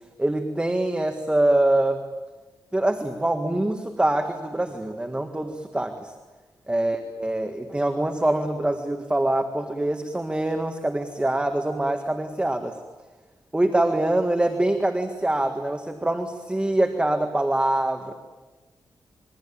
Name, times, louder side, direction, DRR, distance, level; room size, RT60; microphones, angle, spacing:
voice 1, 0.2-2.0 2.7-6.1 6.7-12.8 13.5-18.1, right 1 dB, 10° right, 5 dB, 1.8 m, -24 dB
27.0 x 23.0 x 8.7 m, 1.2 s
wide cardioid pair, 115°, 9 cm